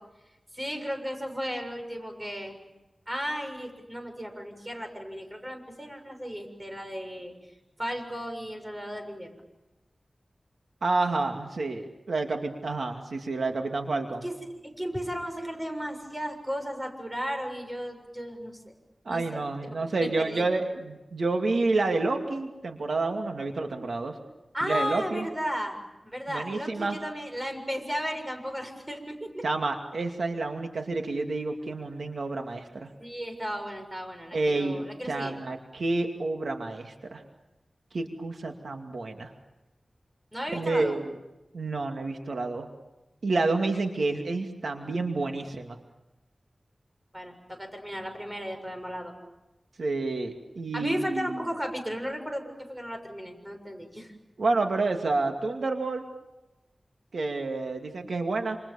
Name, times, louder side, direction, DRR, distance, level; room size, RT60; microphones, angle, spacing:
voice 1, 0.5-2.6 3.1-7.3 7.8-9.3 14.2-14.4 14.6-18.7 19.1-19.4 19.7-20.5 24.5-25.8 26.0-29.4 33.0-35.3 40.3-41.0 47.1-49.1 50.7-54.1, equal, 15° right, 5 dB, 6.9 m, -35 dB
voice 2, 10.8-11.8 12.1-14.3 19.0-24.1 24.6-25.3 26.3-27.0 29.4-32.9 34.3-37.2 37.9-39.3 40.5-41.2 41.5-42.7 43.2-45.8 49.8-51.4 54.4-56.0 57.1-58.6, right 3 dB, 90° right, 4 dB, 2.5 m, -29 dB
28.5 x 28.0 x 7.2 m, 1.0 s
wide cardioid pair, 80°, 0 cm